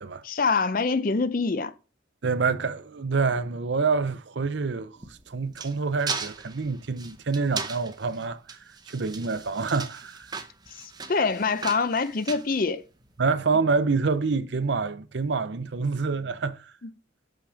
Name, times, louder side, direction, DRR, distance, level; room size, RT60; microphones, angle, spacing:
voice 1, 0.2-1.7 10.7-12.8, left 4 dB, 45° left, 0.6 m, -25 dB
voice 2, 2.2-5.0 5.3-8.6 8.9-10.3 13.2-16.7, right 4 dB, 65° right, 0.6 m, -27 dB
sound 1, 5.0-13.2, right 5 dB, 20° right, 0.7 m, -38 dB
6.5 x 5.7 x 5.1 m
head